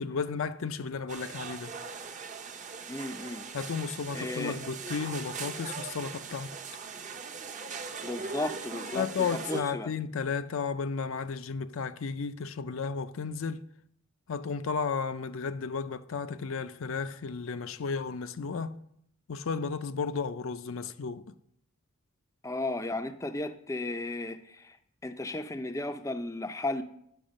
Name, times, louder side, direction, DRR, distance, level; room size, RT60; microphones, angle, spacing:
voice 1, 0.0-1.7 3.5-6.5 8.9-13.6 14.3-18.8 19.3-21.3, left 5 dB, 70° left, 0.5 m, -33 dB
sound 1, 1.1-9.6, right 5 dB, 35° right, 0.7 m, -40 dB
voice 2, 2.9-3.5 4.1-4.6 8.0-9.1 9.3-9.9 22.4-24.8 25.0-26.8, left 2 dB, 15° left, 0.4 m, -34 dB
10.0 x 5.8 x 6.4 m
head